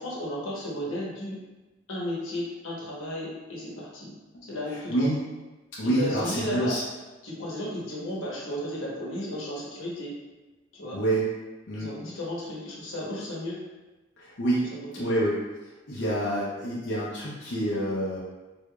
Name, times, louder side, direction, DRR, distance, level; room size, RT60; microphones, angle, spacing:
voice 1, 0.0-1.4 1.9-4.1 4.4-5.1 5.8-6.8 7.2-10.1 10.7-11.0 11.8-13.7 14.6-15.2, left 1 dB, 80° left, -4 dB, 1.0 m, -34 dB
voice 2, 5.8-6.8 10.9-11.2 11.7-11.9 14.2-14.6 15.0-15.3 15.9-18.2, right 1 dB, 60° left, -7 dB, 0.6 m, -27 dB
4.7 x 2.7 x 2.3 m, 1.1 s
head